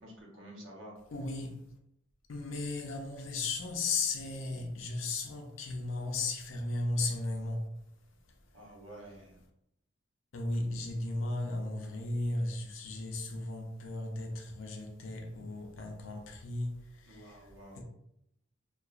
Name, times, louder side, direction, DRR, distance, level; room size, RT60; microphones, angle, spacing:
voice 1, 0.0-1.0 8.5-9.4 17.1-17.8, right 1 dB, 80° right, 0.8 m, -50 dB
voice 2, 1.1-1.7 2.3-7.7 10.3-17.8, left 2 dB, 80° left, 0.5 m, -35 dB
2.9 x 2.3 x 2.3 m
head